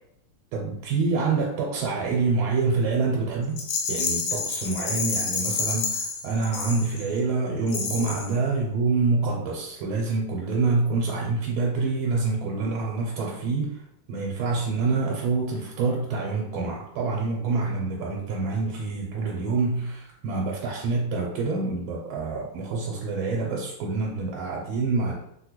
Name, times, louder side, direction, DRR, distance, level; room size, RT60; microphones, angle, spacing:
voice 1, 0.5-3.6 3.9-13.8 14.1-25.1, right 4 dB, 90° right, -2 dB, 1.4 m, -26 dB
Rattle, 3.6-7.2 7.7-8.4, left 4 dB, 85° left, 1.4 m, -29 dB
3.6 x 2.2 x 2.9 m, 0.78 s
omnidirectional pair, 2.2 m